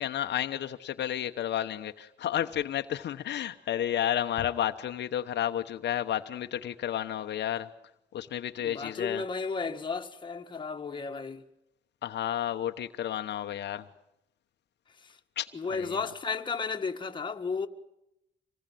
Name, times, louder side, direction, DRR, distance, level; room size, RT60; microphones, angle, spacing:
voice 1, 0.0-7.7 8.1-9.2 12.0-13.9 15.4-16.0, left 11 dB, 65° left, 1.1 m, -31 dB
voice 2, 8.6-11.4 15.0-15.2 15.5-17.7, left 5 dB, 25° left, 1.9 m, -33 dB
26.0 x 20.0 x 9.2 m
cardioid pair, 120°, 19 cm